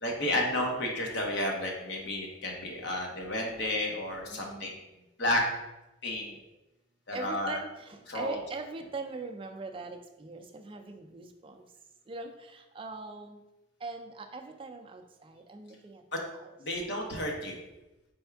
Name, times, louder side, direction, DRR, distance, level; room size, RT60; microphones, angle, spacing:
voice 1, 0.0-4.7 5.2-5.4 6.0-6.4 7.1-7.6 8.1-8.4 16.1-16.2 16.6-17.6, left 1 dB, 60° left, 0 dB, 0.9 m, -31 dB
voice 2, 4.3-4.8 7.1-11.6 12.1-13.4 13.8-16.0, right 3 dB, 25° right, 4 dB, 0.4 m, -41 dB
4.4 x 3.5 x 3.4 m, 1.0 s
head